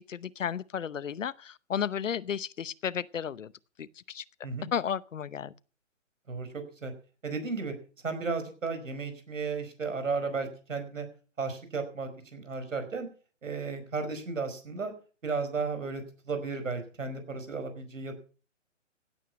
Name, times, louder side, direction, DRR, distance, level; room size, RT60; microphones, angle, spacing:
voice 1, 0.0-3.5 3.8-4.2 4.7-5.5, left 8 dB, 75° left, 0.9 m, -33 dB
voice 2, 6.3-6.9 7.2-7.7 8.0-11.1 11.4-13.1 13.4-14.9 15.2-18.2, right 4 dB, 80° right, 5.1 m, -34 dB
16.0 x 9.4 x 6.0 m
hypercardioid pair, 140°, 38 cm